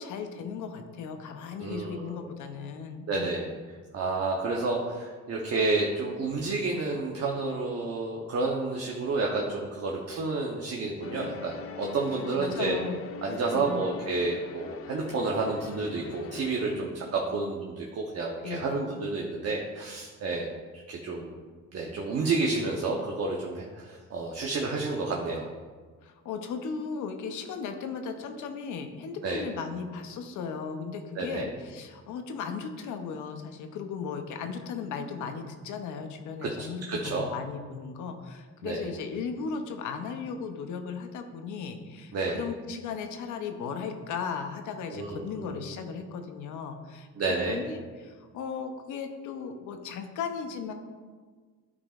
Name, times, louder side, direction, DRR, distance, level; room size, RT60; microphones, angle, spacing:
voice 1, 0.0-3.3 12.3-13.0 13.5-13.9 18.4-18.8 26.0-50.7, left 5 dB, 80° left, 6 dB, 0.8 m, -36 dB
voice 2, 1.6-2.2 3.1-3.5 3.9-12.8 13.2-20.5 20.7-21.3 21.7-25.5 29.2-29.4 31.2-31.5 36.4-37.3 38.6-38.9 42.1-42.4 44.9-45.6 47.2-47.6, right 3 dB, 55° right, -1 dB, 0.9 m, -30 dB
sound 1, 11.0-16.8, left 7 dB, 50° left, 0.5 m, -42 dB
11.0 x 4.9 x 2.5 m, 1.5 s
cardioid pair, 90°, 30 cm